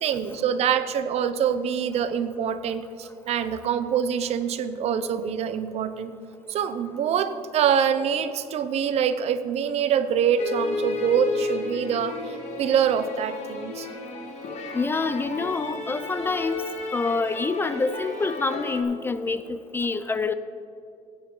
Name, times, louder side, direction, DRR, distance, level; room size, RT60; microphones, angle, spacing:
voice 1, 0.0-6.1 6.5-13.9, right 8 dB, 55° right, 12 dB, 0.7 m, -25 dB
sound 1, 10.4-18.8, left 3 dB, 60° left, 1.8 m, -33 dB
voice 2, 14.7-16.6 16.9-20.3, left 3 dB, 15° left, 12 dB, 0.3 m, -26 dB
16.0 x 9.5 x 3.8 m, 2.6 s
cardioid pair, 165°, 13 cm